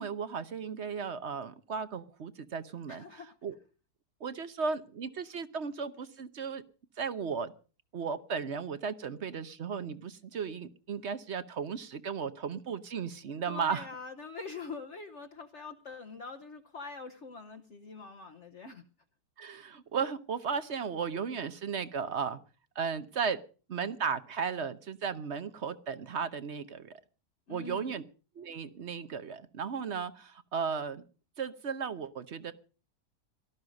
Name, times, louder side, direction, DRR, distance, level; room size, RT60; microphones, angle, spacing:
voice 1, 0.0-3.5 4.2-6.6 7.0-7.5 7.9-13.9 19.4-22.4 22.7-23.4 23.7-27.0 27.5-28.0 28.4-31.0 31.4-32.5, right 6 dB, 50° right, 12 dB, 1.1 m, -35 dB
voice 2, 2.9-3.3 13.5-18.8 27.5-27.9, left 4 dB, 50° left, 4 dB, 1.1 m, -44 dB
18.0 x 12.5 x 5.2 m, 0.38 s
omnidirectional pair, 1.7 m